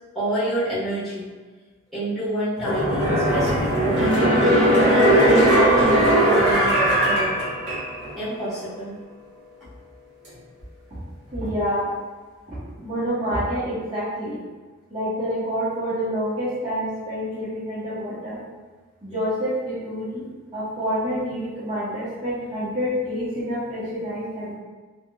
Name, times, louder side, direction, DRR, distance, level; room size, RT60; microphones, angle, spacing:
voice 1, 0.1-1.3 1.9-4.1 4.9-7.4 8.2-9.0, right 1 dB, ahead, -14 dB, 1.3 m, -28 dB
sound 1, 2.6-8.2 8.5-8.6, right 1 dB, 55° right, 1.1 m, -19 dB
voice 2, 11.3-11.9 12.5-14.4 14.9-18.4 19.0-20.3 20.5-24.5, equal, 25° right, -13 dB, 0.8 m, -27 dB
3.3 x 2.6 x 2.2 m, 1.3 s
head